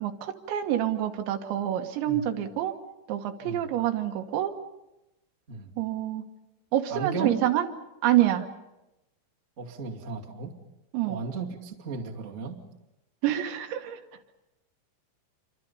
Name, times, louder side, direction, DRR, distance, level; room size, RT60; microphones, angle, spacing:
voice 1, 0.0-2.7 3.1-4.5 5.8-6.2 6.7-7.7 8.0-8.5 10.9-11.2 13.2-14.0, right 12 dB, 80° right, 5 dB, 3.5 m, -27 dB
voice 2, 6.9-7.4 9.6-10.5 11.0-12.6, right 4 dB, 25° right, -2 dB, 1.6 m, -34 dB
27.5 x 24.5 x 5.5 m, 0.93 s
omnidirectional pair, 5.3 m